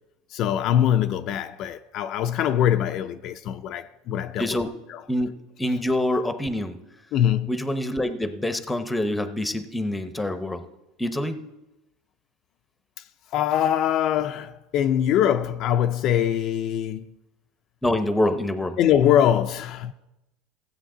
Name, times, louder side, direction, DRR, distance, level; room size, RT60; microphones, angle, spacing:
voice 1, 0.3-4.6 4.9-5.0 7.1-7.5 13.3-17.0 18.8-19.9, left 10 dB, 45° left, 0.4 m, -23 dB
voice 2, 4.4-4.8 5.1-6.8 7.5-10.6 11.0-11.4 17.8-18.8, left 1 dB, 5° left, 0.7 m, -26 dB
16.0 x 8.0 x 3.8 m
supercardioid pair, 140°, 0 cm